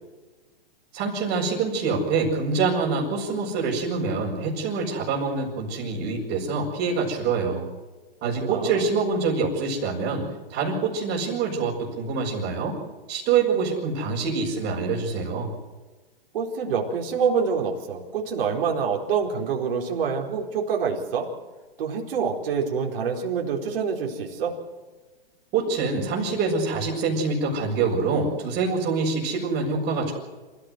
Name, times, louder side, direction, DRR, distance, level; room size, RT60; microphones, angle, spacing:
voice 1, 0.9-7.7 8.2-12.8 13.1-15.5 25.5-30.1, right 4 dB, 35° right, -5 dB, 6.4 m, -25 dB
voice 2, 8.4-8.8 16.3-21.3 21.8-24.5, right 6 dB, 65° right, 0 dB, 4.5 m, -26 dB
27.0 x 15.5 x 8.1 m, 1.2 s
hypercardioid pair, 130°, 30 cm